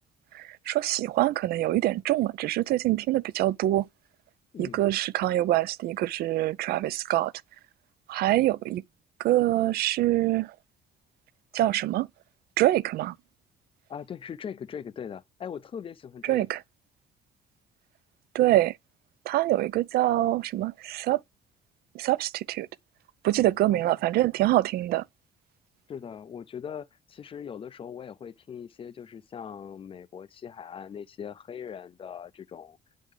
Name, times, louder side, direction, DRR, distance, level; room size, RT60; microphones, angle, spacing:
voice 1, 0.3-3.9 4.6-7.3 8.1-8.8 9.2-10.5 11.5-12.1 12.6-13.1 16.2-16.6 18.3-18.8 19.3-21.2 21.9-22.7 23.2-25.0, right 15 dB, 65° right, 0.4 m, -25 dB
voice 2, 4.5-4.9 8.4-8.5 13.9-16.5 23.7-23.9 25.9-32.8, left 7 dB, 30° left, 0.4 m, -40 dB
8.2 x 3.8 x 3.2 m
cardioid pair, 110°, 17 cm